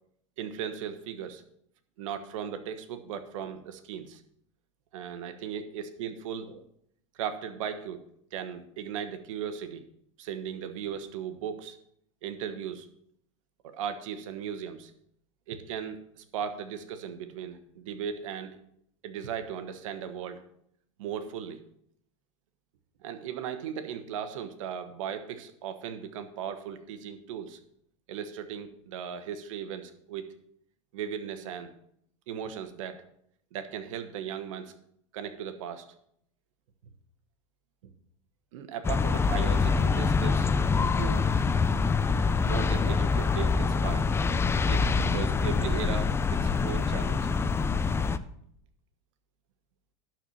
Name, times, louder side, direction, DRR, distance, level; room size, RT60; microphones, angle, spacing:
voice 1, 0.4-1.4 2.0-4.2 4.9-6.6 7.1-8.0 8.3-9.9 10.2-11.8 12.2-12.9 13.6-14.9 15.5-18.6 19.0-20.4 21.0-21.6 23.0-27.6 28.1-30.3 30.9-31.7 32.3-33.0 33.5-34.7 35.1-35.9 38.5-40.5 40.9-41.3 42.4-44.1 44.7-47.3, right 8 dB, 80° right, 9 dB, 1.3 m, -37 dB
sound 1, 38.8-48.2, left 4 dB, 15° left, 0.5 m, -25 dB
11.5 x 4.6 x 7.1 m, 0.70 s
supercardioid pair, 115°, 16 cm